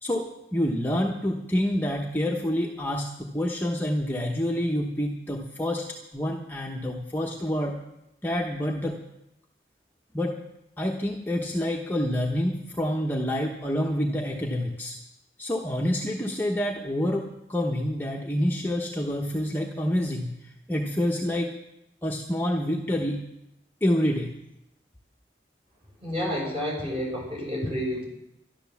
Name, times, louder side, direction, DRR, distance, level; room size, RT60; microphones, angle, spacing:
voice 1, 0.0-5.9 6.1-7.7 8.2-9.0 10.1-10.4 10.8-14.9 15.4-21.5 22.0-23.2 23.8-24.3, equal, 10° left, -1 dB, 1.0 m, -27 dB
voice 2, 26.0-28.1, equal, 30° right, -3 dB, 5.6 m, -30 dB
12.5 x 12.0 x 7.1 m, 0.86 s
head